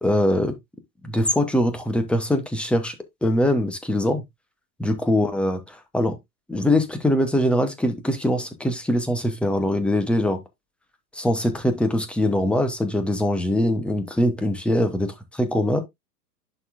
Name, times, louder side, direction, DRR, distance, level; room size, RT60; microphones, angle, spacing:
voice 1, 0.0-0.5 1.0-2.9 3.2-4.2 4.8-5.6 5.9-6.2 6.5-10.4 11.1-15.1 15.5-15.8, left 1 dB, ahead, 0.9 m, -22 dB
11.0 x 4.1 x 2.5 m
figure-of-eight pair, 110°, 49 cm